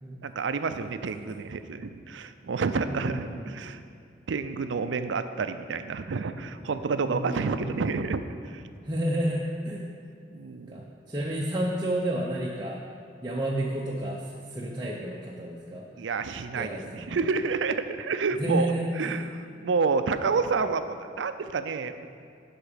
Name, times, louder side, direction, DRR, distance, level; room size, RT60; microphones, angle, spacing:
voice 1, 0.2-3.8 4.3-8.6 10.3-10.8 16.0-18.7 19.0-22.1, right 4 dB, 80° right, 10 dB, 0.5 m, -29 dB
voice 2, 2.9-3.4 7.0-7.6 8.8-9.9 10.7-12.8 13.2-15.9 16.6-17.2 18.4-19.2, right 1 dB, 25° right, -4 dB, 0.7 m, -31 dB
12.0 x 5.1 x 5.1 m, 2.3 s
head